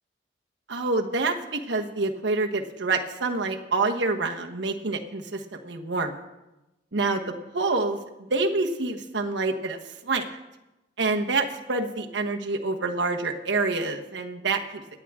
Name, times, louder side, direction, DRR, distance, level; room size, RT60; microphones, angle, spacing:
voice 1, 0.7-6.1 6.9-10.2 11.0-14.8, right 3 dB, 75° right, 3 dB, 1.1 m, -27 dB
17.5 x 10.0 x 3.6 m, 0.98 s
head